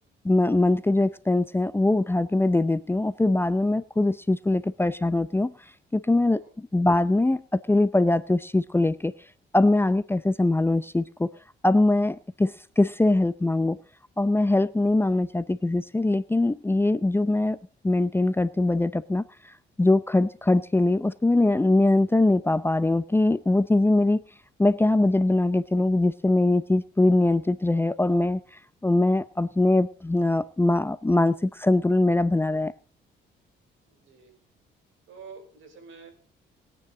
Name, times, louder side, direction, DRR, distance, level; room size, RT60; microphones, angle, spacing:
voice 1, 0.2-5.5 5.9-9.1 9.5-11.3 11.6-13.8 14.2-17.6 17.8-24.2 24.6-28.4 28.8-32.7, left 2 dB, 10° left, 15 dB, 0.6 m, -22 dB
voice 2, 33.9-34.3 35.1-36.1, right 5 dB, 80° right, 6 dB, 4.6 m, -47 dB
21.0 x 9.3 x 3.8 m, 0.38 s
cardioid pair, 90°, 20 cm